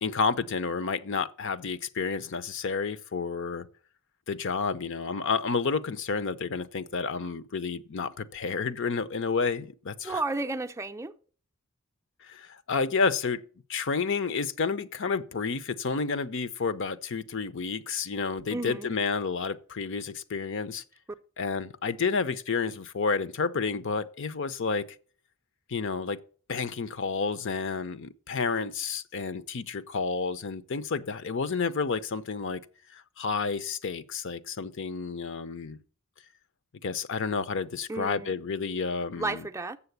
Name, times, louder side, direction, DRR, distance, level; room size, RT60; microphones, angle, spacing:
voice 1, 0.0-3.7 4.3-10.2 12.2-13.4 13.7-20.8 21.4-24.9 25.7-26.2 26.5-32.6 32.9-35.8 36.8-39.5, left 5 dB, 55° left, 0.6 m, -30 dB
voice 2, 10.0-11.1 18.5-18.9 37.9-38.3 39.1-39.8, right 2 dB, 15° right, 0.5 m, -32 dB
7.5 x 7.0 x 8.0 m
head